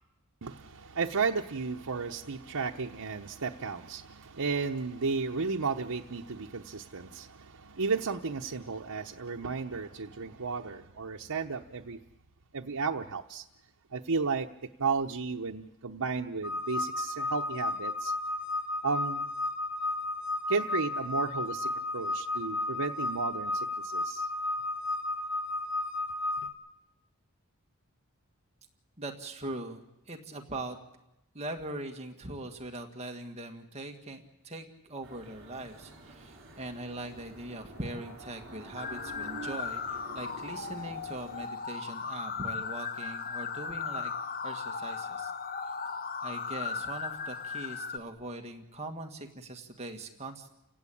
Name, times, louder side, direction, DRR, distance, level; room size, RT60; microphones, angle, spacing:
voice 1, 0.4-12.0 12.5-13.4 13.9-14.5 14.8-18.1 18.8-19.3 20.5-24.3, right 4 dB, 85° right, 0.9 m, -33 dB
sound 1, 16.4-26.5, left 2 dB, 60° left, 3.3 m, -33 dB
voice 2, 29.0-30.8 31.3-44.1 44.4-45.3 46.2-50.5, right 2 dB, 30° right, 2.0 m, -41 dB
sound 2, 35.0-41.5, right 2 dB, 60° right, 4.2 m, -48 dB
sound 3, 38.8-48.0, left 5 dB, 40° left, 0.9 m, -37 dB
30.0 x 17.0 x 8.7 m
head